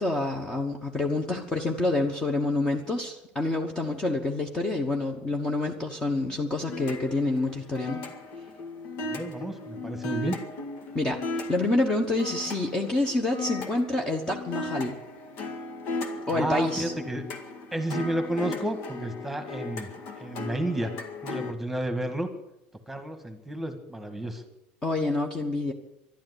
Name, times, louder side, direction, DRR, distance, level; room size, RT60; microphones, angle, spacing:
voice 1, 0.0-8.0 10.9-15.0 16.3-16.9 24.8-25.7, left 2 dB, 15° left, 2 dB, 1.3 m, -27 dB
sound 1, 6.7-21.5, left 2 dB, 60° left, 2.0 m, -37 dB
voice 2, 9.1-10.4 16.3-17.2 17.7-19.9 20.2-20.9 21.2-22.3 22.9-24.4, right 1 dB, 5° right, 7 dB, 1.7 m, -31 dB
12.0 x 12.0 x 9.9 m, 0.87 s
cardioid pair, 155°, 4 cm